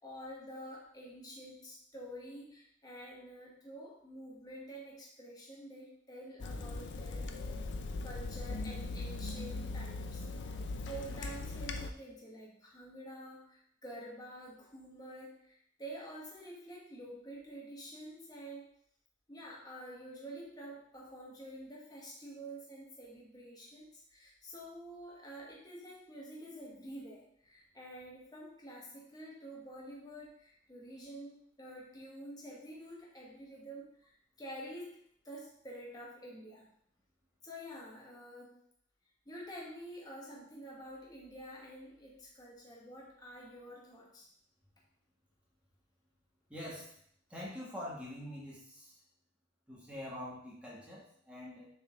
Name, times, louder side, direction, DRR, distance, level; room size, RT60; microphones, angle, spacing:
voice 1, 0.0-7.3 8.0-18.6 19.3-36.7 37.4-38.6 39.2-44.3, right 1 dB, 20° left, -5 dB, 1.4 m, -48 dB
Water tap faucet / Sink (filling or washing), 6.4-11.9, left 3 dB, 70° left, 0.5 m, -40 dB
voice 2, 46.5-46.9 47.3-48.9 49.7-51.7, left 1 dB, 5° right, -6 dB, 2.0 m, -45 dB
6.5 x 4.3 x 3.8 m, 0.66 s
head